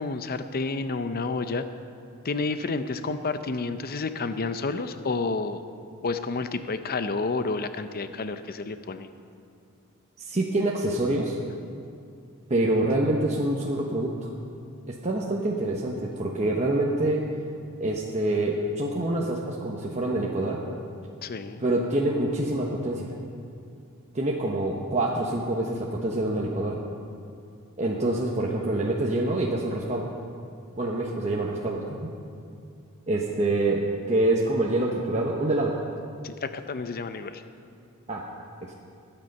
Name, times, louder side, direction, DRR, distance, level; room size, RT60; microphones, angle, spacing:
voice 1, 0.0-1.6 2.2-5.6 6.0-9.1 21.2-21.6 36.2-37.4, left 3 dB, 45° left, 10 dB, 0.6 m, -30 dB
voice 2, 10.2-11.4 12.5-14.3 14.9-17.3 17.8-20.6 21.6-23.1 24.1-26.8 27.8-30.1 30.8-32.1 33.1-35.8 38.1-38.3, right 1 dB, 30° right, -3 dB, 1.1 m, -26 dB
20.5 x 9.1 x 5.4 m, 2.4 s
head